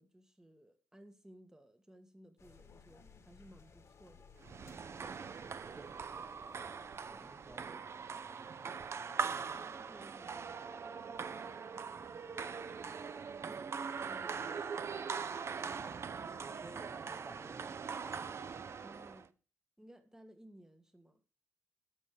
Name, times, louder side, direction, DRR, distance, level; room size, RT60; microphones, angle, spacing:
voice 1, 0.0-4.3 7.1-7.7 9.5-10.6 13.5-14.7 18.8-19.3 19.8-21.2, right 1 dB, 10° right, 2.0 m, -59 dB
sound 1, 2.4-8.2, left 5 dB, 50° left, 2.1 m, -62 dB
sound 2, 4.4-19.3, right 6 dB, 45° right, 0.7 m, -42 dB
voice 2, 5.4-6.5 7.0-7.8 8.1-9.6 13.4-13.6 16.2-18.7, right 2 dB, 25° right, 1.3 m, -57 dB
13.5 x 5.5 x 5.0 m
cardioid pair, 70°, 6 cm